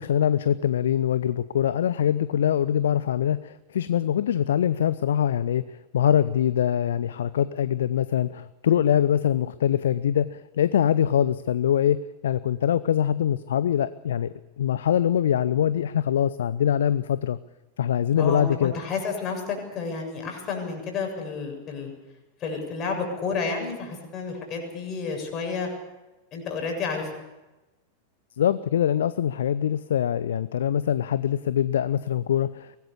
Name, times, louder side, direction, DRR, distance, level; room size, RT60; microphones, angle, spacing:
voice 1, 0.0-5.6 5.9-17.4 17.8-18.7 28.4-32.8, left 10 dB, 60° left, 16 dB, 0.7 m, -23 dB
voice 2, 18.2-21.9 22.4-25.7 26.3-27.2, left 4 dB, 30° left, 2 dB, 7.3 m, -31 dB
23.5 x 19.0 x 7.2 m, 1.0 s
figure-of-eight pair, 90°, 0 cm